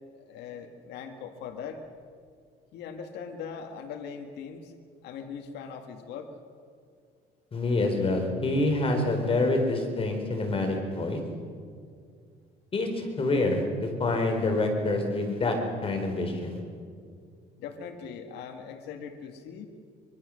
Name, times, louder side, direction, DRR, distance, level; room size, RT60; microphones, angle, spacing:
voice 1, 0.2-1.8 2.7-4.7 5.0-6.3 17.6-19.7, left 6 dB, 80° left, 5 dB, 1.9 m, -40 dB
voice 2, 7.5-11.2 12.7-16.6, left 2 dB, 35° left, 4 dB, 4.3 m, -27 dB
24.0 x 23.0 x 6.5 m, 2.2 s
cardioid pair, 110°, 17 cm